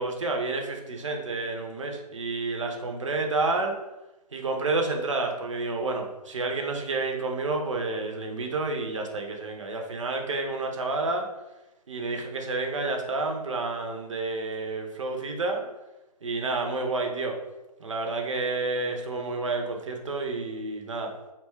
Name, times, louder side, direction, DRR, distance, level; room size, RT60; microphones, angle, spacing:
voice 1, 0.0-3.8 4.3-11.3 11.9-15.6 16.2-17.4 17.8-21.1, right 3 dB, 50° right, 2 dB, 0.5 m, -30 dB
2.7 x 2.2 x 3.2 m, 1.0 s
figure-of-eight pair, 145°, 21 cm